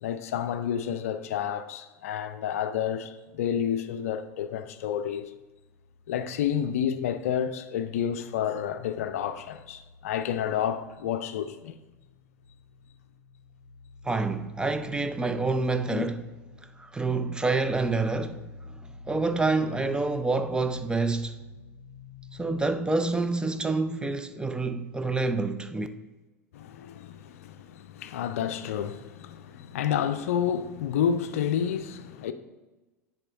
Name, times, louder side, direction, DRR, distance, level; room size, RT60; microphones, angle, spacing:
voice 1, 0.0-5.3 6.1-11.7 15.9-16.1 26.5-32.3, left 9 dB, 65° left, 0.4 m, -30 dB
sound 1, 4.1-7.8 8.1-23.9, left 4 dB, 60° right, 1.8 m, -50 dB
voice 2, 14.0-16.2 16.8-21.4 22.4-25.9, right 3 dB, 10° right, 0.4 m, -27 dB
9.7 x 3.6 x 3.7 m
figure-of-eight pair, 80°, 8 cm